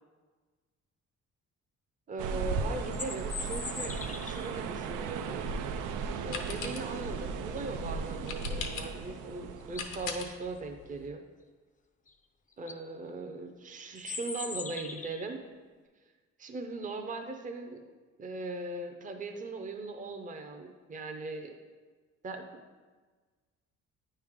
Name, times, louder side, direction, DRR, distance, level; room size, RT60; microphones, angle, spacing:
voice 1, 2.1-3.9 4.2-5.5 6.2-11.2 12.6-15.4 16.4-17.8 18.2-21.5 22.2-22.6, right 3 dB, 25° right, 5 dB, 0.6 m, -39 dB
sound 1, 2.2-10.3, right 5 dB, 85° right, 0.5 m, -36 dB
sound 2, 2.7-4.6 9.1-9.2 9.6-10.0 12.1-12.2 12.5-12.8 13.9-15.3, left 5 dB, 25° left, 0.5 m, -40 dB
sound 3, 5.5-11.1, left 5 dB, 80° left, 0.8 m, -43 dB
9.1 x 3.3 x 3.6 m, 1.4 s
cardioid pair, 90°, 30 cm